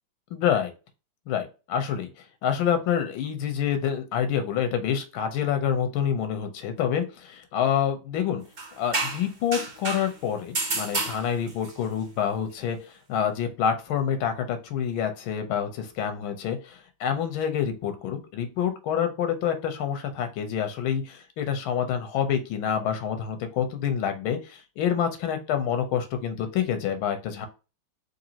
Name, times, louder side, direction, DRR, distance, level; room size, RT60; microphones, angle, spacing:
voice 1, 0.3-0.7 1.3-2.1 2.4-8.4 8.8-27.5, left 8 dB, 90° left, 8 dB, 1.5 m, -27 dB
sound 1, 8.6-10.1 10.5-11.7, right 3 dB, 50° right, 0.5 m, -29 dB
3.9 x 3.2 x 2.8 m, 0.31 s
omnidirectional pair, 2.2 m